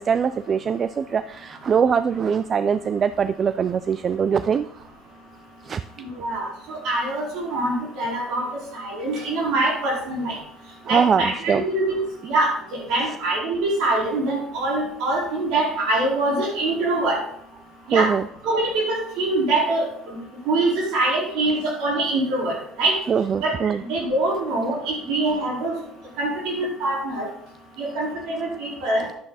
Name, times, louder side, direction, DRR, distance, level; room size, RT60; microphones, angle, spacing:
voice 1, 0.0-4.7 5.6-5.8 10.9-11.6 17.9-18.2 23.1-23.8, right 7 dB, 40° right, 14 dB, 0.4 m, -22 dB
voice 2, 6.0-8.5 8.7-10.4 10.9-12.0 12.2-17.2 17.9-18.1 18.4-20.2 20.4-22.9 23.4-23.5 23.8-25.7 26.2-27.3 27.8-29.0, right 2 dB, 75° right, -3 dB, 4.7 m, -24 dB
10.0 x 8.4 x 4.2 m, 0.68 s
supercardioid pair, 85°, 0 cm